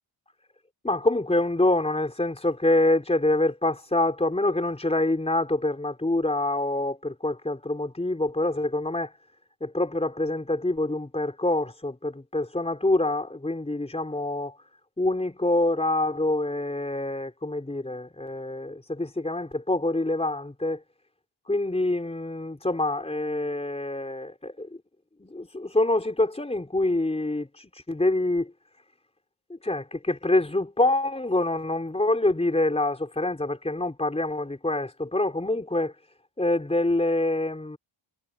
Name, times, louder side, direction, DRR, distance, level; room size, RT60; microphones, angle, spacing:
voice 1, 0.8-9.1 9.6-14.6 15.0-20.8 21.5-24.8 25.2-28.5 29.5-35.9 36.4-37.8, left 2 dB, 10° left, 3.9 m, -26 dB
wide cardioid pair, 145°, 49 cm